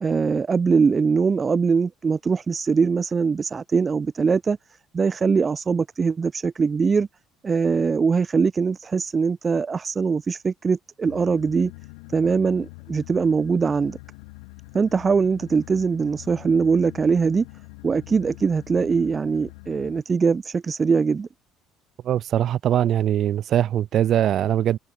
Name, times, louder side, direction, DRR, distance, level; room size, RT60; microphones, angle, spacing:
voice 1, 0.0-4.6 4.9-7.1 7.4-11.7 12.1-14.0 14.7-17.4 17.8-21.3, right 5 dB, 30° right, 0.4 m, -22 dB
sound 1, 11.1-20.0, left 38 dB, 85° left, 4.1 m, -44 dB
voice 2, 22.0-24.8, right 11 dB, 55° right, 1.5 m, -21 dB
supercardioid pair, 85°, 0 cm